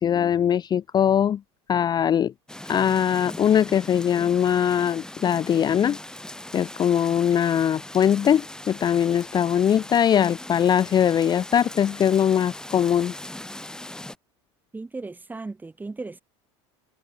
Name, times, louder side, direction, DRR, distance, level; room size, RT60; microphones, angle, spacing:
voice 1, 0.0-1.4 1.7-2.3 2.7-6.0 6.5-13.1, left 9 dB, 30° left, 0.6 m, -21 dB
sound 1, 2.5-14.2, left 1 dB, 5° left, 1.9 m, -40 dB
voice 2, 14.7-16.2, right 3 dB, 10° right, 1.7 m, -36 dB
supercardioid pair, 105°, 14 cm